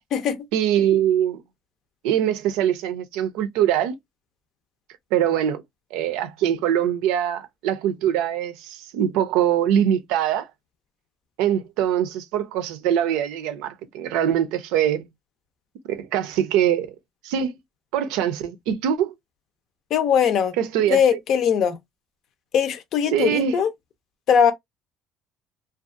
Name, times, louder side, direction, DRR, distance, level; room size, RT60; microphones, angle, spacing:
voice 1, 0.5-1.4 2.0-3.9 5.1-5.6 5.9-10.5 11.4-15.0 15.9-16.9 17.2-17.5 17.9-19.1 20.6-21.0 23.1-23.6, right 10 dB, 85° right, 0.5 m, -23 dB
voice 2, 19.9-20.5 20.9-21.8 22.5-23.7 24.3-24.5, left 7 dB, 65° left, 0.5 m, -20 dB
2.6 x 2.3 x 2.5 m
supercardioid pair, 90°, 0 cm